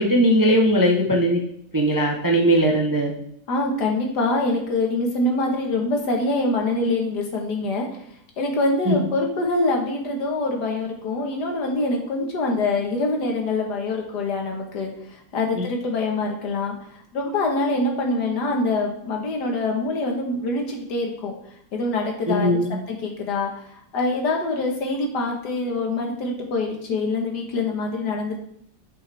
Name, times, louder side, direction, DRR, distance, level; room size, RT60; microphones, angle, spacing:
voice 1, 0.0-1.4 1.7-3.1 8.9-9.0 15.6-15.7 22.3-22.8, equal, 30° right, 1 dB, 0.3 m, -19 dB
voice 2, 3.5-7.9 8.4-21.3 21.7-28.4, left 2 dB, 70° left, 1 dB, 1.9 m, -25 dB
8.5 x 5.5 x 3.4 m, 0.70 s
omnidirectional pair, 1.8 m